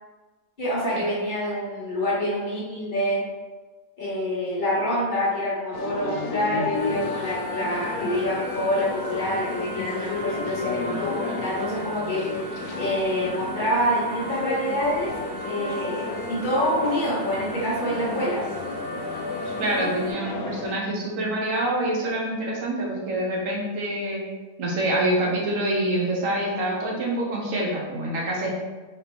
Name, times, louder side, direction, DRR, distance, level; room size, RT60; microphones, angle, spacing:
voice 1, 0.6-3.2 4.0-15.1 15.4-18.4, equal, 35° left, -7 dB, 1.3 m, -26 dB
sound 1, 5.7-20.7, left 3 dB, 85° left, 1.1 m, -32 dB
sound 2, 6.7-20.1, right 3 dB, 35° right, 0.3 m, -41 dB
voice 2, 19.6-24.2 24.6-28.5, right 1 dB, 65° right, -2 dB, 1.2 m, -26 dB
4.1 x 2.9 x 3.4 m, 1.3 s
omnidirectional pair, 1.6 m